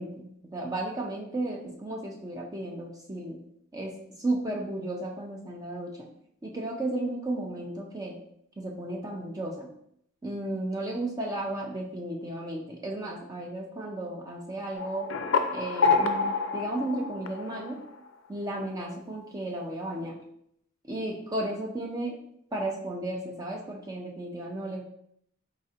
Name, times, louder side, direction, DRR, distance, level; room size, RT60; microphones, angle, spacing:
voice 1, 0.0-3.4 3.7-6.1 6.4-8.2 8.6-9.7 10.2-15.1 15.5-17.8 18.3-20.2 20.8-22.2 22.5-24.8, right 1 dB, 15° right, 0 dB, 0.4 m, -34 dB
sound 1, 14.8-18.1, left 4 dB, 65° left, 0.4 m, -27 dB
4.1 x 4.0 x 2.5 m, 0.72 s
head